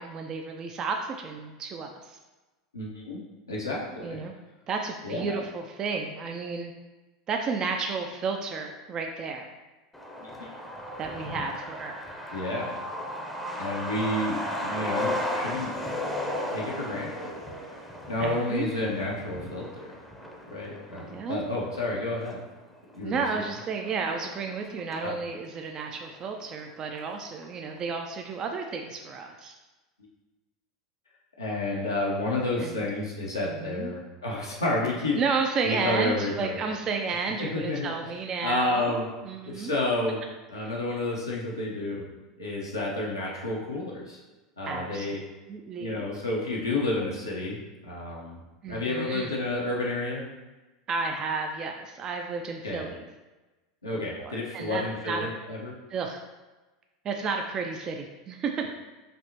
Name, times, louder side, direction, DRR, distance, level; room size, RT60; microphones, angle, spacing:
voice 1, 0.0-2.2 4.0-4.3 4.7-6.7 7.3-9.5 11.0-12.0 18.2-18.7 21.0-21.4 23.0-29.5 32.6-32.8 33.4-33.9 35.2-39.7 40.6-40.7 44.7-45.1 45.5-46.1 48.6-49.4 50.9-53.0 53.9-55.3 55.9-56.2 57.0-58.7, right 4 dB, 35° right, 3 dB, 0.4 m, -32 dB
voice 2, 2.7-3.2 3.5-4.2 5.0-5.3 10.2-10.5 12.3-12.8 13.6-15.7 16.5-17.4 18.1-19.7 20.5-22.4 22.9-23.2 25.0-25.2 31.4-35.2 35.6-36.6 37.4-37.9 38.4-39.1 39.5-40.2 40.5-42.0 42.4-44.2 44.6-45.2 45.8-48.4 48.7-50.2 52.6-52.8 53.8-55.7, left 2 dB, 90° left, -4 dB, 0.8 m, -30 dB
Truck, 9.9-25.1 25.4-25.5 25.8-26.7 27.0-27.1 27.4-27.8, left 1 dB, 5° left, 0.7 m, -35 dB
5.1 x 2.8 x 2.9 m, 1.1 s
figure-of-eight pair, 80°, 2 cm